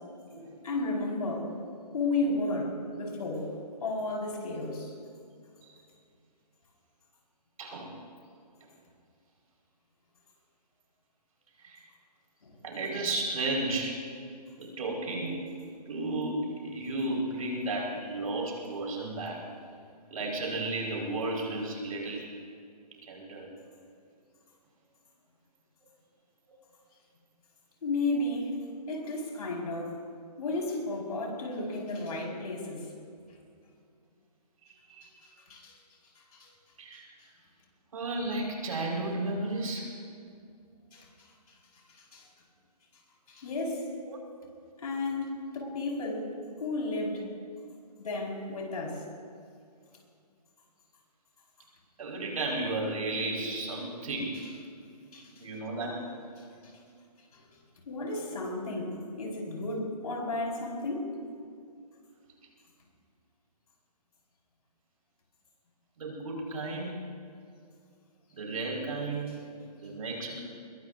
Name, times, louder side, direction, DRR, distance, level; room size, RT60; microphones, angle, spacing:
voice 1, 0.6-1.5 1.9-3.5 3.8-4.9 12.4-12.6 27.8-28.6 28.9-30.0 30.4-32.8 35.2-35.7 36.3-36.5 40.9-41.1 42.0-42.3 43.3-43.9 44.8-46.3 46.6-47.2 48.0-49.0 55.1-55.3 57.3-57.4 57.8-61.1, left 2 dB, 65° left, -1 dB, 5.0 m, -33 dB
voice 2, 7.6-8.0 11.6-11.8 12.6-14.0 14.6-15.4 15.9-19.4 20.1-22.3 23.0-23.5 34.6-35.0 36.8-37.0 37.9-39.9 44.1-44.2 52.0-54.4 55.4-56.0 66.0-67.0 68.3-69.3 69.8-70.4, right 2 dB, 60° right, -1 dB, 4.9 m, -33 dB
22.0 x 20.5 x 2.7 m, 2.3 s
hypercardioid pair, 155°, 21 cm